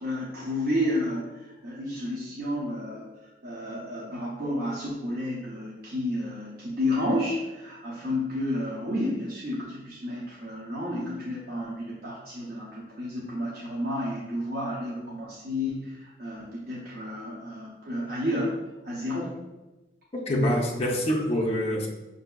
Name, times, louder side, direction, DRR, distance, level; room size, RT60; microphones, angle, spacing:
voice 1, 0.0-3.1 3.4-18.6 18.8-19.4 21.1-21.2, left 1 dB, 50° right, -5 dB, 0.6 m, -31 dB
voice 2, 20.1-21.9, equal, 35° left, -1 dB, 0.6 m, -25 dB
5.5 x 2.6 x 2.2 m, 1.1 s
head